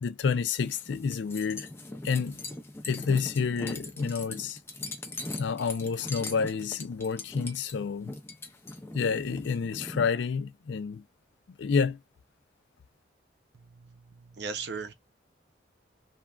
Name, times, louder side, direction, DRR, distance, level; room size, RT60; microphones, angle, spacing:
voice 1, 0.0-1.7 2.0-2.4 2.8-4.6 5.4-8.1 8.9-11.0 11.6-12.0, left 5 dB, 70° left, 0.4 m, -29 dB
sound 1, 0.6-10.1, left 2 dB, 15° left, 0.5 m, -40 dB
voice 2, 13.5-14.9, right 5 dB, 60° right, 0.6 m, -38 dB
3.4 x 2.3 x 2.3 m
head